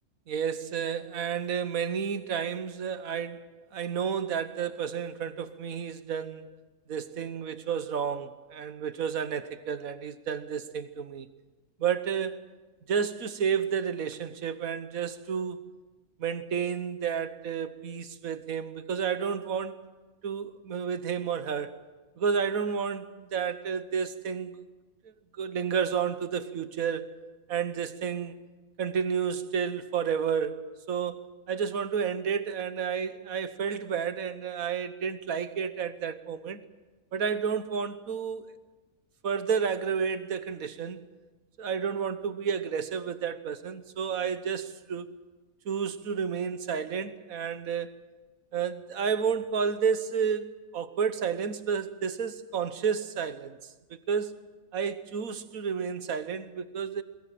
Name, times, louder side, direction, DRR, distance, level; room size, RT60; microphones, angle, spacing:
voice 1, 0.3-3.4 3.7-6.5 6.9-11.3 11.8-12.4 12.9-15.7 16.2-19.8 20.2-21.8 22.2-24.6 25.4-28.4 28.8-30.6 30.9-36.6 37.1-38.5 39.2-41.0 41.6-45.1 45.7-47.9 48.5-50.4 50.7-53.5 53.9-54.3 54.7-57.0, right 7 dB, 80° right, 1.5 m, -31 dB
21.5 x 21.5 x 7.7 m
omnidirectional pair, 1.5 m